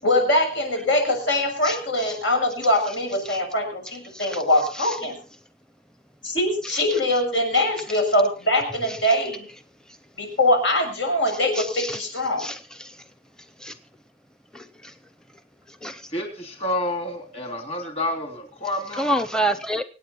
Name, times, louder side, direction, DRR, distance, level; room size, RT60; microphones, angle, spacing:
voice 1, 0.0-5.2 6.2-9.5 10.2-12.5, left 1 dB, 85° left, 3 dB, 6.8 m, -22 dB
voice 2, 11.6-12.0 12.4-12.9 13.6-13.7 14.5-14.6 15.8-16.0 19.0-19.8, right 1 dB, 5° left, 10 dB, 0.7 m, -27 dB
voice 3, 16.1-19.2, left 1 dB, 35° left, 4 dB, 3.1 m, -29 dB
25.5 x 8.9 x 4.3 m, 0.36 s
head